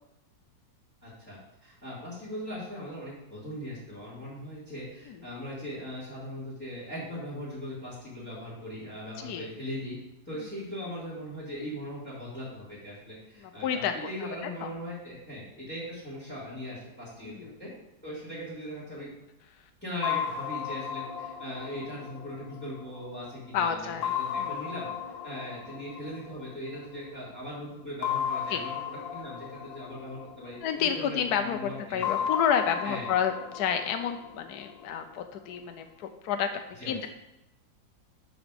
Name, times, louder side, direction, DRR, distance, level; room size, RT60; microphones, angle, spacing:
voice 1, 1.0-9.9 10.2-17.3 17.6-17.7 18.0-19.1 19.8-23.8 24.1-24.9 25.2-32.0 32.8-33.1 36.8-37.0, equal, 5° left, -6 dB, 2.9 m, -39 dB
voice 2, 13.6-13.9 14.6-14.7 17.2-17.6 23.5-24.7 28.5-28.6 30.6-36.5 36.8-37.1, left 8 dB, 70° left, 6 dB, 1.1 m, -30 dB
sound 1, 20.0-23.4 24.0-26.9 28.0-31.1 32.0-35.1, left 8 dB, 85° left, 1.6 m, -35 dB
12.0 x 4.0 x 5.1 m, 0.91 s
omnidirectional pair, 2.0 m